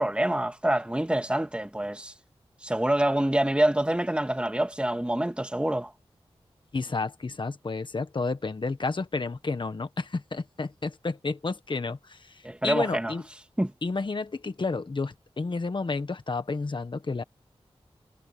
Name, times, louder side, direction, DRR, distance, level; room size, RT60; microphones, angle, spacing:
voice 1, 0.0-2.1 2.6-5.9 12.4-13.1 13.6-13.7, right 1 dB, 10° right, 2.0 m, -26 dB
voice 2, 6.7-13.2 13.8-17.2, left 3 dB, 50° left, 1.5 m, -31 dB
wide cardioid pair, 70°, 10 cm